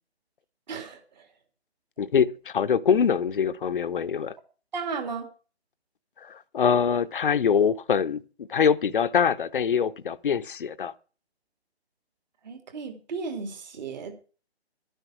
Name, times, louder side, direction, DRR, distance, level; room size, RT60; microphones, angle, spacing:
voice 1, 0.7-1.3 4.7-5.3 12.4-14.1, right 5 dB, 40° right, 3.2 m, -35 dB
voice 2, 2.0-4.3 6.2-8.2 8.5-10.9, left 7 dB, 50° left, 0.8 m, -24 dB
12.0 x 10.0 x 6.1 m
figure-of-eight pair, 155°, 33 cm